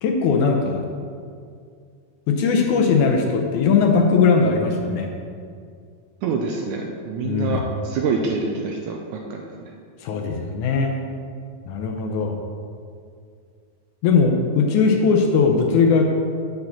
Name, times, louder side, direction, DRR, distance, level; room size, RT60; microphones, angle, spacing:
voice 1, 0.0-0.8 2.3-5.1 7.2-7.6 10.0-10.9 11.7-12.4 14.0-16.1, left 5 dB, 75° left, 2 dB, 2.0 m, -19 dB
voice 2, 6.2-9.7, right 4 dB, 80° right, 2 dB, 1.8 m, -26 dB
7.8 x 4.6 x 7.0 m, 2.2 s
omnidirectional pair, 3.9 m